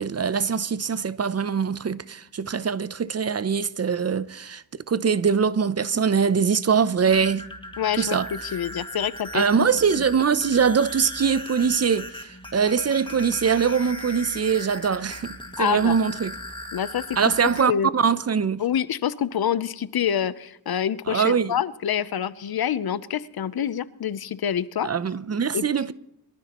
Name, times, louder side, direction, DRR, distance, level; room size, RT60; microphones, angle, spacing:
voice 1, 0.0-7.5 8.0-8.3 9.3-16.3 17.2-18.6 21.1-21.5 24.8-25.9, right 6 dB, 40° right, 0.6 m, -23 dB
sound 1, 7.0-17.6, left 1 dB, 10° left, 2.0 m, -38 dB
voice 2, 7.8-9.7 15.6-15.9 16.7-17.0 17.7-17.9 18.6-24.9 25.5-25.9, left 9 dB, 70° left, 0.7 m, -27 dB
23.0 x 13.0 x 3.0 m
cardioid pair, 65°, 39 cm